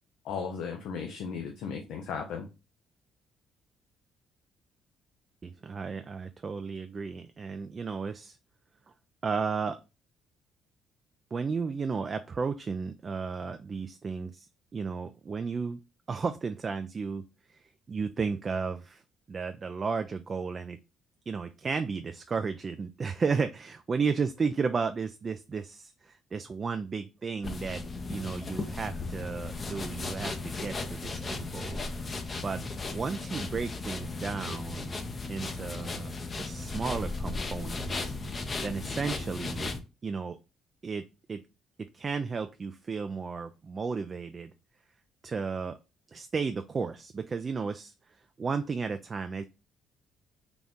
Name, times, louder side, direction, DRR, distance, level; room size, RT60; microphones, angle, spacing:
voice 1, 0.2-2.5, left 6 dB, 80° left, 3 dB, 0.6 m, -36 dB
voice 2, 5.4-8.4 9.2-9.8 11.3-14.5 14.7-15.8 16.1-17.2 17.5-19.0 19.3-20.8 21.3-27.8 28.1-31.8 32.4-32.6 32.9-34.9 35.3-38.1 38.6-39.7 40.0-40.4 40.8-41.0 41.3-41.4 41.9-44.5 45.2-45.7 46.1-47.9 48.4-49.4, right 5 dB, 40° right, 8 dB, 0.3 m, -33 dB
sound 1, 27.4-39.8, left 3 dB, 35° left, 0.6 m, -36 dB
4.0 x 2.3 x 3.5 m, 0.29 s
supercardioid pair, 80°, 0 cm